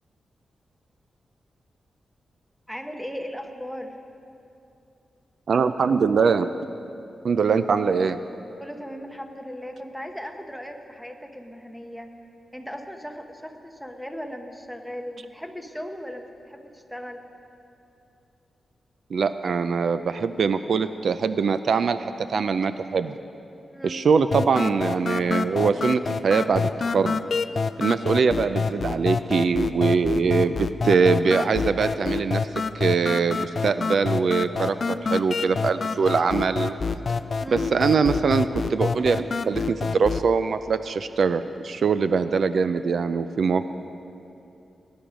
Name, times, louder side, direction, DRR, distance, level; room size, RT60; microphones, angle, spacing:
voice 1, 2.7-4.0 8.6-12.1 12.5-17.2 23.7-24.0 37.4-37.7, equal, ahead, 4 dB, 0.9 m, -37 dB
voice 2, 5.5-6.5 7.2-8.2 19.1-23.1 23.8-27.2 27.8-32.4 32.7-36.7 37.5-43.7, right 5 dB, 60° right, 11 dB, 0.4 m, -23 dB
sound 1, 24.3-40.3, left 4 dB, 45° left, 0.3 m, -27 dB
17.5 x 10.5 x 5.1 m, 2.8 s
wide cardioid pair, 135°, 0 cm